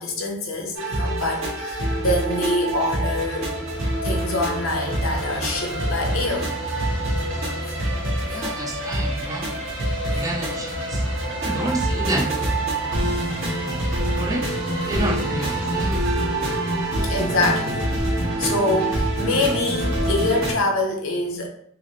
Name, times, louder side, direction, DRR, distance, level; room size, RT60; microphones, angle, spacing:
voice 1, 0.0-3.5 4.0-6.6 16.9-18.0 18.4-21.5, left 2 dB, 80° left, 0.8 m, -25 dB
sound 1, 0.7-20.5, right 1 dB, 85° right, 1.3 m, -26 dB
sound 2, 2.6-17.0, left 1 dB, 20° left, 0.9 m, -35 dB
voice 2, 8.3-9.5 10.1-11.0 11.4-12.3 12.9-13.1 14.1-14.5 14.9-16.0, right 1 dB, 15° right, 0.4 m, -29 dB
4.9 x 2.0 x 3.0 m
head